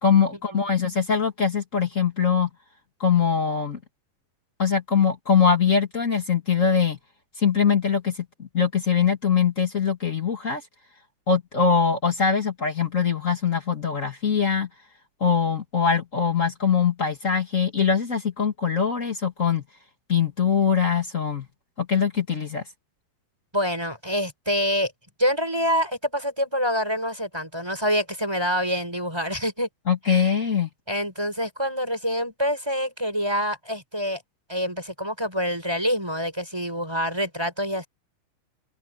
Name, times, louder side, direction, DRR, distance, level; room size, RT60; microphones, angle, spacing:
voice 1, 0.0-2.5 3.0-3.8 4.6-7.0 7.4-10.6 11.3-14.7 15.2-19.6 20.1-21.5 21.8-22.6 29.9-30.7, left 6 dB, 35° left, 1.3 m, -22 dB
voice 2, 23.5-24.9 25.2-29.7 30.1-30.3 30.9-34.2 34.5-37.9, equal, 5° right, 6.3 m, -26 dB
open air
omnidirectional pair, 4.7 m